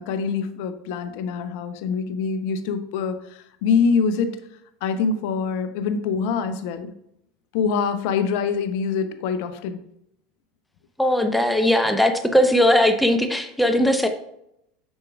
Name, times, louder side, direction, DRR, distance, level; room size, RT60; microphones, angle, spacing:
voice 1, 0.0-4.4 4.8-6.9 7.5-9.8, left 5 dB, 60° left, 10 dB, 0.6 m, -24 dB
voice 2, 11.0-14.1, left 1 dB, 5° left, 7 dB, 0.7 m, -19 dB
6.7 x 6.2 x 2.4 m, 0.77 s
hypercardioid pair, 80°, 0 cm